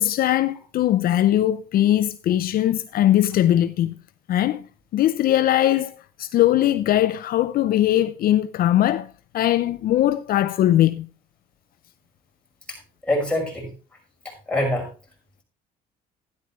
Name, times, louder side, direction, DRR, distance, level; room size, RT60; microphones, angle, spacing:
voice 1, 0.0-3.9 4.3-4.6 4.9-9.1 9.3-11.1, left 13 dB, 60° left, 0.5 m, -20 dB
voice 2, 13.0-13.7 14.2-14.9, left 1 dB, 5° left, 5.8 m, -24 dB
12.5 x 10.5 x 3.1 m
cardioid pair, 110°, 17 cm